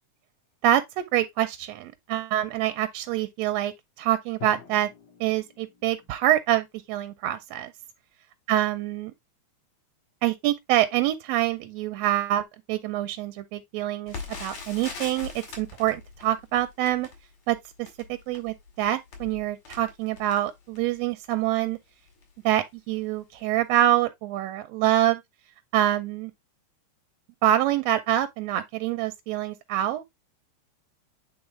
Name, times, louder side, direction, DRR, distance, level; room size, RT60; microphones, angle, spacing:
voice 1, 0.6-4.9 5.2-7.7 8.5-9.1 10.2-14.2 14.4-17.1 17.5-17.6 18.1-21.8 22.4-25.2 25.7-26.3 27.4-30.0, right 13 dB, 80° right, 1.5 m, -26 dB
Drum, 4.4-6.3, left 8 dB, 85° left, 3.3 m, -46 dB
Crackle, 14.1-21.0 21.6-21.7 22.1-22.3 22.9-23.1 23.4-23.5, left 4 dB, 65° left, 3.2 m, -42 dB
8.9 x 3.6 x 3.2 m
omnidirectional pair, 3.5 m